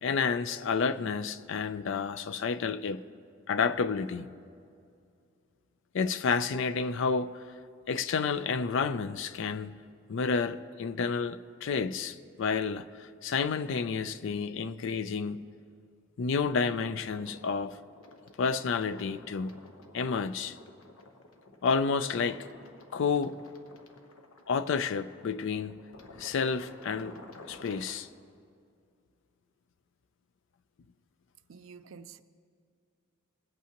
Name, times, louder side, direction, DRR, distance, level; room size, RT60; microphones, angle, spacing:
voice 1, 0.0-3.0 3.5-4.3 5.9-7.4 7.9-9.8 10.1-15.4 16.2-17.8 18.4-19.5 19.9-20.6 21.6-22.5 22.9-23.4 24.5-25.8 26.2-27.2 27.5-28.1, left 5 dB, 65° left, 0.4 m, -30 dB
sound 1, 17.1-28.0, left 2 dB, 85° left, 0.9 m, -53 dB
voice 2, 31.5-32.2, right 6 dB, 70° right, 0.4 m, -49 dB
21.0 x 8.3 x 2.9 m
head